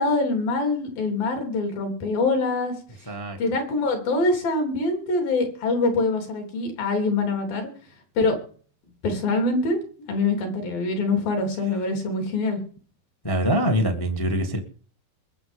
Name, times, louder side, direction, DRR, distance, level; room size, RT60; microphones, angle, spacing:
voice 1, 0.0-2.7 3.4-7.7 8.2-8.4 9.0-9.8 10.1-12.6, left 3 dB, 65° left, 4 dB, 5.2 m, -24 dB
voice 2, 3.1-3.4 13.2-14.6, equal, 25° left, 5 dB, 0.5 m, -24 dB
22.0 x 7.8 x 5.3 m, 0.44 s
omnidirectional pair, 4.4 m